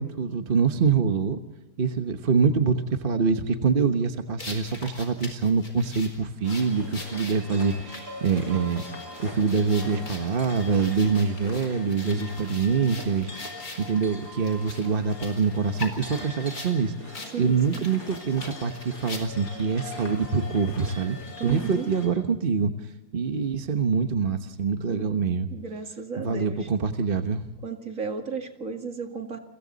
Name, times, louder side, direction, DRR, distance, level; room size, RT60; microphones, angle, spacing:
voice 1, 0.0-1.4 1.8-8.8 9.2-21.2 21.4-25.5 26.2-27.5, right 5 dB, 40° right, 7 dB, 1.2 m, -25 dB
sound 1, 4.4-13.9 14.4-16.7 17.1-17.3 17.6-19.5, left 3 dB, 65° left, 4.8 m, -42 dB
sound 2, 6.4-22.1, left 2 dB, 80° left, 5.9 m, -42 dB
voice 2, 17.3-17.9 21.4-21.9 24.9-25.3 25.5-26.7 27.6-29.4, right 5 dB, 55° right, 4 dB, 2.5 m, -34 dB
30.0 x 24.0 x 4.1 m, 1.1 s
omnidirectional pair, 1.7 m